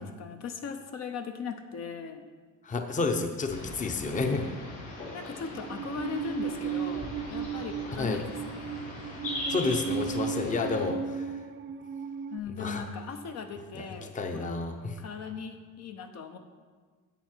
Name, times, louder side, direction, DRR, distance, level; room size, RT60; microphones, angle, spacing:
voice 1, 0.0-2.3 4.3-4.7 5.1-8.8 12.3-14.6 15.0-16.4, left 5 dB, 55° left, 6 dB, 0.8 m, -39 dB
voice 2, 2.6-4.5 8.0-8.2 9.5-11.4 12.6-12.8 14.1-15.0, left 3 dB, 25° left, 5 dB, 0.8 m, -30 dB
sound 1, 3.5-10.8, left 2 dB, 75° left, 3.3 m, -40 dB
Musical instrument, 5.5-12.4, right 7 dB, 35° right, 0.5 m, -35 dB
11.0 x 8.1 x 4.5 m, 1.5 s
cardioid pair, 130°, 32 cm